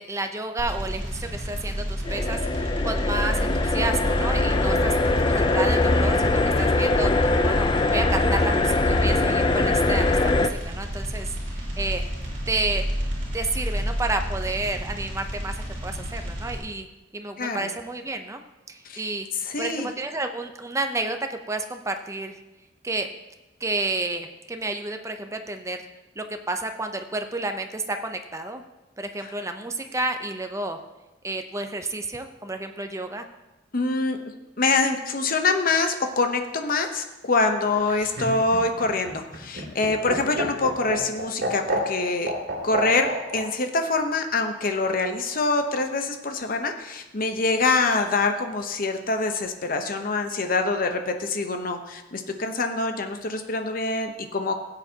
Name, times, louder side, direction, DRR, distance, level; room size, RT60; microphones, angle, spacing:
voice 1, 0.0-4.9 5.3-12.0 12.5-12.8 13.3-16.9 17.1-18.4 18.7-19.3 19.6-22.4 22.8-23.1 23.6-25.9 26.2-28.6 29.0-30.8 31.2-33.3, right 2 dB, 15° right, 6 dB, 0.6 m, -31 dB
sound 1, 0.6-16.6, equal, 45° right, 3.5 m, -30 dB
sound 2, 2.0-10.5, left 2 dB, 25° left, 0.4 m, -22 dB
voice 2, 17.4-17.7 18.9-19.0 19.4-19.9 33.7-34.2 34.6-42.3 42.6-54.5, left 3 dB, 50° left, 6 dB, 0.9 m, -25 dB
Laughter, 37.8-43.4 44.7-45.4, right 1 dB, 65° right, 2.4 m, -30 dB
16.5 x 8.0 x 2.9 m, 1.0 s
head